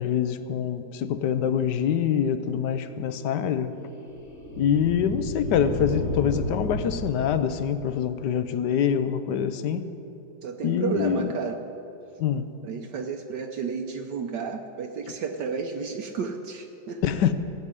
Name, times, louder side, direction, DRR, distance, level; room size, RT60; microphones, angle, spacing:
voice 1, 0.0-3.7 4.6-9.9 10.6-11.3 12.2-12.5 17.0-17.3, left 8 dB, 70° left, 11 dB, 1.2 m, -25 dB
sound 1, 2.9-8.3, left 2 dB, 45° left, 1.6 m, -33 dB
voice 2, 10.4-11.6 12.6-17.0, right 5 dB, 70° right, 4 dB, 1.3 m, -32 dB
16.0 x 6.9 x 9.7 m, 3.0 s
omnidirectional pair, 2.1 m